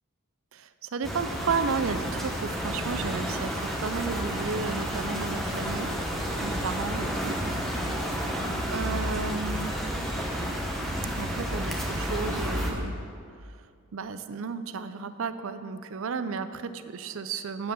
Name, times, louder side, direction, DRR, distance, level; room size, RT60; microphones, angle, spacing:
voice 1, 0.5-6.0 6.4-7.4 8.7-9.7 11.2-12.9 13.9-17.7, right 5 dB, 65° right, 11 dB, 0.5 m, -33 dB
sound 1, 1.0-12.7, equal, ahead, 0.9 m, -31 dB
8.3 x 7.5 x 6.9 m, 2.3 s
head